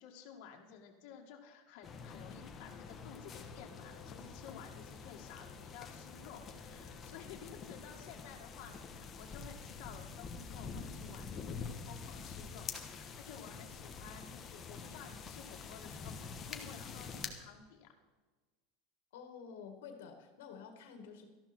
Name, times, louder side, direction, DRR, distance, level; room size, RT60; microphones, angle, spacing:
voice 1, 0.0-12.7 13.0-17.9, left 8 dB, 55° left, 1 dB, 2.1 m, -53 dB
sound 1, 1.8-17.3, left 5 dB, 20° left, 1.2 m, -47 dB
voice 2, 19.1-21.3, left 6 dB, 90° left, 6 dB, 2.0 m, -50 dB
13.5 x 12.0 x 4.5 m, 1.3 s
supercardioid pair, 165°, 0 cm